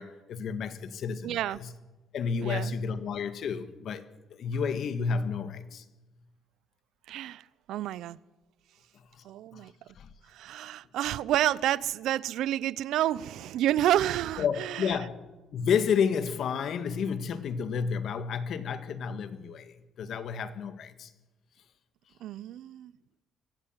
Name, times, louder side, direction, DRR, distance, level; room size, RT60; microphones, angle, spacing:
voice 1, 0.0-1.7 2.1-4.0 4.3-5.8 9.2-9.3 9.5-9.7 10.0-10.1 14.4-15.3 15.5-21.1, left 6 dB, 60° left, 1.7 m, -31 dB
voice 2, 1.2-1.6 2.4-2.7 7.1-7.4 7.7-8.2 9.2-9.7 10.3-14.9 22.2-22.9, right 12 dB, 75° right, 0.6 m, -29 dB
24.0 x 16.0 x 7.4 m
cardioid pair, 110°, 0 cm